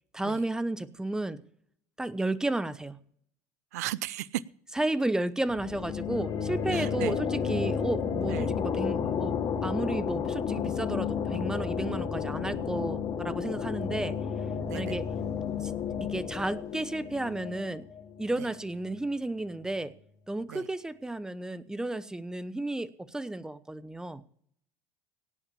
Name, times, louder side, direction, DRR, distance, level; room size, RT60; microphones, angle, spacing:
voice 1, 0.1-1.4 2.0-3.0 4.7-14.2 14.7-15.1 15.6-15.7 16.0-17.9 18.2-19.9 20.3-24.2, right 2 dB, 10° right, 0.9 m, -32 dB
voice 2, 3.7-4.4 6.7-7.1 8.3-8.5 14.7-15.0 20.5-20.6, right 15 dB, 85° right, 0.5 m, -35 dB
sound 1, 5.5-18.9, left 7 dB, 50° left, 2.3 m, -32 dB
17.5 x 5.8 x 7.0 m
supercardioid pair, 90°, 8 cm